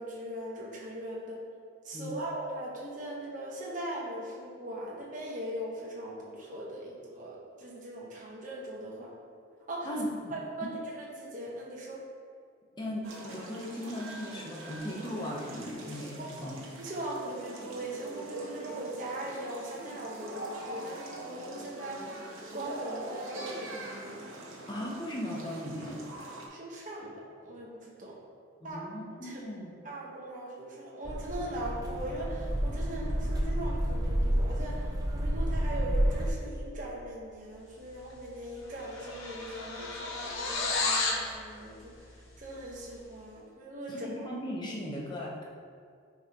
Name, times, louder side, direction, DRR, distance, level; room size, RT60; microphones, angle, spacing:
voice 1, 0.0-1.4 1.8-9.1 9.7-9.9 10.3-12.0 16.2-16.3 16.8-24.2 26.5-28.2 28.6-28.9 29.2-29.4 29.8-41.9 42.4-44.2, right 1 dB, 40° right, -4 dB, 1.2 m, -40 dB
voice 2, 9.8-10.3 12.8-16.6 24.7-26.0 28.6-29.7 43.9-45.4, equal, 20° left, -4 dB, 1.0 m, -38 dB
sound 1, 13.0-26.5, right 1 dB, 80° right, 1.1 m, -43 dB
sound 2, 31.0-36.3, equal, 20° right, 0.6 m, -30 dB
sound 3, 38.1-38.3 38.6-41.3, left 3 dB, 75° left, 1.0 m, -32 dB
8.8 x 4.9 x 3.0 m, 2.2 s
head